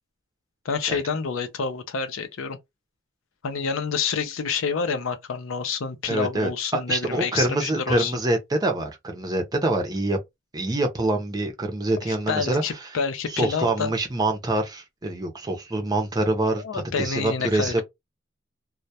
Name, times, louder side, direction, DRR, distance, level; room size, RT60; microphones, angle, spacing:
voice 1, 0.6-2.6 3.4-8.2 12.1-13.9 16.6-17.8, left 5 dB, 70° left, 0.5 m, -28 dB
voice 2, 6.1-6.5 6.9-10.2 10.5-12.6 13.3-17.8, right 2 dB, 20° right, 0.5 m, -25 dB
2.2 x 2.1 x 2.7 m
head